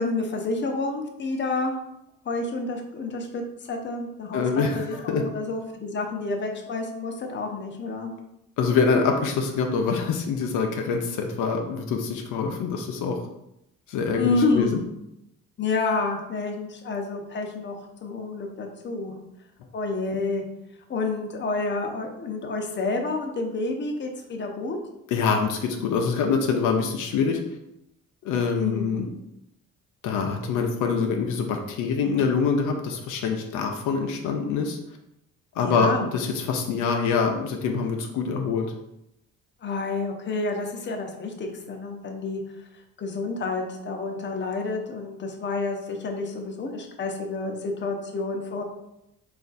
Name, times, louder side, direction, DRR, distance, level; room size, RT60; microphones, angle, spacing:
voice 1, 0.0-1.7 2.3-3.4 3.7-8.1 14.2-14.8 15.6-17.7 18.0-19.1 19.7-20.4 20.9-24.8 28.5-29.0 35.6-36.1 39.6-42.4 43.0-48.6, left 3 dB, 40° left, 3 dB, 0.7 m, -29 dB
voice 2, 4.3-5.2 8.6-13.2 13.9-14.8 25.1-27.4 28.2-29.1 30.0-34.8 35.6-38.7, left 5 dB, 85° left, 3 dB, 0.6 m, -25 dB
3.3 x 2.5 x 3.9 m, 0.84 s
cardioid pair, 90°, 30 cm